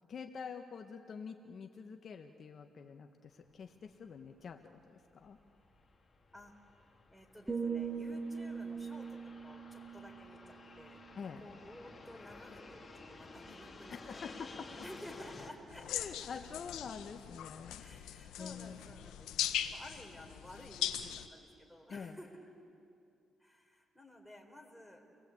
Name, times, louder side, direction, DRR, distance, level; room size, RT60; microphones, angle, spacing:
voice 1, 0.1-4.6 4.9-5.4 11.1-11.4 13.9-14.7 15.9-18.9 21.9-22.2, left 6 dB, 50° left, 5 dB, 1.2 m, -46 dB
Fixed-wing aircraft airplane, 3.3-15.5, left 3 dB, 25° left, 2.9 m, -54 dB
voice 2, 7.1-11.0 11.4-14.3 14.8-16.3 17.7-19.3 19.7-22.3 23.4-25.0, left 1 dB, ahead, 1 dB, 4.3 m, -53 dB
sound 1, 7.5-11.5 11.8-12.1, right 5 dB, 15° right, 2.1 m, -41 dB
sound 2, 15.7-21.3, left 11 dB, 90° left, 1.0 m, -40 dB
29.5 x 20.5 x 8.5 m, 2.5 s
cardioid pair, 90°, 0 cm